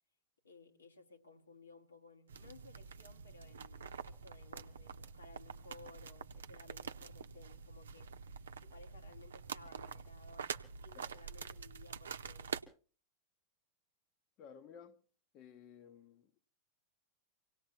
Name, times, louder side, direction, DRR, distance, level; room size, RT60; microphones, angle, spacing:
voice 1, 0.4-8.1 8.6-10.5 10.8-12.6, left 3 dB, 75° left, 1.6 m, -59 dB
sound 1, 2.3-12.6, right 6 dB, 65° right, 0.7 m, -47 dB
voice 2, 14.4-15.0 15.3-16.4, left 7 dB, 40° left, 1.0 m, -56 dB
25.0 x 18.0 x 2.9 m
figure-of-eight pair, 90°, 0 cm